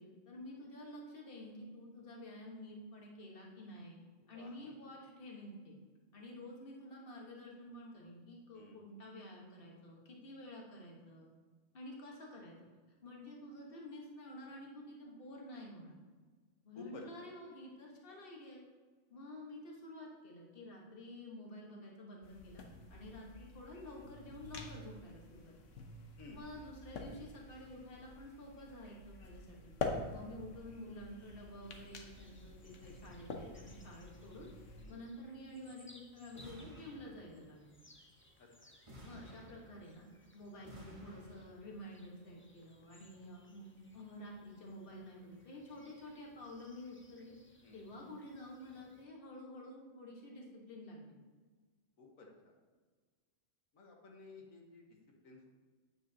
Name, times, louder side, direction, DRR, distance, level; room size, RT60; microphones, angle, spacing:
voice 1, 0.0-4.0 4.3-5.7 6.1-11.3 11.7-12.7 13.0-16.0 16.6-18.6 19.1-25.5 26.3-29.7 30.1-34.5 34.9-37.8 39.0-40.1 40.3-47.4 47.7-51.2, left 1 dB, 45° left, -2 dB, 1.6 m, -50 dB
voice 2, 4.2-4.5 8.5-8.8 16.8-17.3 26.2-26.5 34.8-35.0 38.4-38.5 47.6-47.8 52.0-52.5 53.7-54.8 55.2-55.5, left 3 dB, 90° left, 0 dB, 1.7 m, -54 dB
sound 1, 22.2-34.8, left 3 dB, 70° left, 1.2 m, -47 dB
sound 2, 31.6-49.0, left 1 dB, 15° left, 0.4 m, -66 dB
sound 3, 36.3-37.6 38.9-40.1 40.6-41.8, equal, 25° right, 1.2 m, -55 dB
8.9 x 7.6 x 2.8 m, 1.4 s
omnidirectional pair, 1.4 m